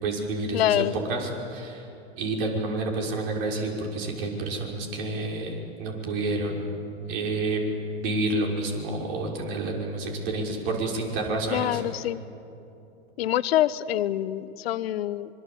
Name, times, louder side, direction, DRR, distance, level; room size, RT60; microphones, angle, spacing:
voice 1, 0.0-0.8 1.1-1.8 2.2-6.7 7.1-7.6 8.0-11.8, right 2 dB, 60° right, 0 dB, 5.9 m, -29 dB
voice 2, 0.5-1.0 11.5-12.2 13.2-15.4, left 13 dB, 70° left, 16 dB, 1.0 m, -26 dB
25.5 x 23.0 x 8.6 m, 2.8 s
hypercardioid pair, 105°, 31 cm